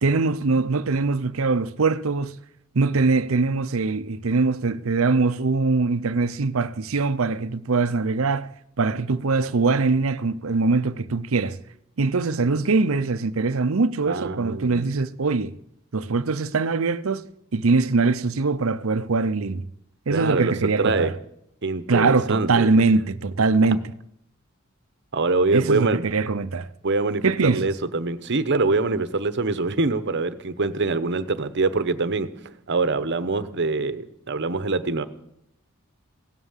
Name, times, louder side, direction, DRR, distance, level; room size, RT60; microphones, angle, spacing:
voice 1, 0.0-2.4 2.7-8.5 8.8-11.6 12.0-15.5 15.9-17.3 17.5-19.6 20.1-21.1 21.9-23.8 25.5-26.7 27.2-27.7, right 3 dB, 75° right, 0.7 m, -22 dB
voice 2, 14.1-14.9 20.1-21.1 21.6-22.7 25.1-26.1 26.8-32.3 32.7-35.0, right 3 dB, 55° right, 1.0 m, -24 dB
17.0 x 11.5 x 7.3 m
head